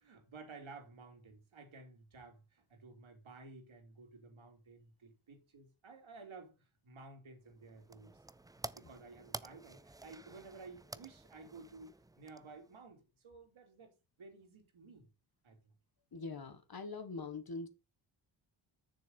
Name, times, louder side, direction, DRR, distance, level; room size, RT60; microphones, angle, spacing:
voice 1, 0.0-8.2 8.7-13.9 14.2-15.1 15.4-15.6, right 3 dB, 70° right, 3.1 m, -54 dB
sound 1, 7.4-12.8, right 2 dB, 10° right, 0.4 m, -50 dB
voice 2, 16.1-17.7, left 3 dB, 45° left, 1.6 m, -43 dB
6.9 x 6.6 x 5.4 m
cardioid pair, 75°, 50 cm